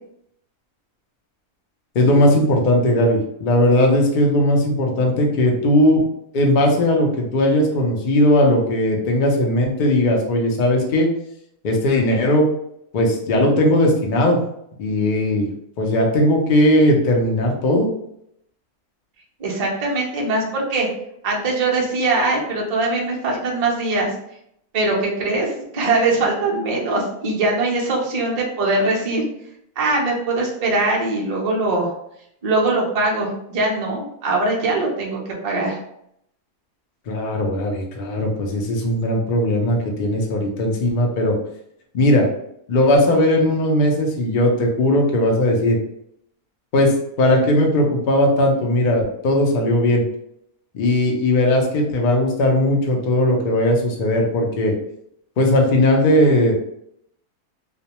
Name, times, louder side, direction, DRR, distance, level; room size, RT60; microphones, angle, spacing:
voice 1, 1.9-6.1 6.3-11.1 11.6-12.5 12.9-14.4 14.8-15.5 15.8-17.9 37.1-41.4 41.9-42.3 42.7-45.8 46.7-50.0 50.7-54.7 55.4-56.6, left 1 dB, 75° left, 0 dB, 0.4 m, -18 dB
voice 2, 19.4-20.9 21.2-24.1 24.7-29.2 29.8-31.9 32.4-35.8, right 2 dB, 70° right, -2 dB, 0.3 m, -21 dB
2.4 x 2.2 x 2.8 m, 0.74 s
omnidirectional pair, 1.5 m